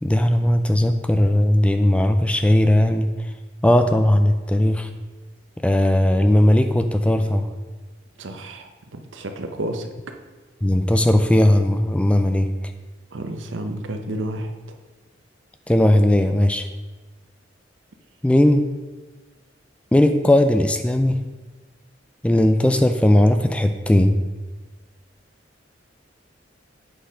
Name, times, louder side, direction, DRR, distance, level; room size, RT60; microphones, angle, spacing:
voice 1, 0.0-3.3 3.6-4.9 5.6-7.5 10.6-12.5 15.7-16.7 18.2-18.6 19.9-21.2 22.2-24.2, left 1 dB, 5° left, 7 dB, 0.3 m, -17 dB
voice 2, 8.2-9.9 13.1-14.5, right 1 dB, 85° right, 6 dB, 0.7 m, -31 dB
7.8 x 4.3 x 5.0 m, 1.3 s
head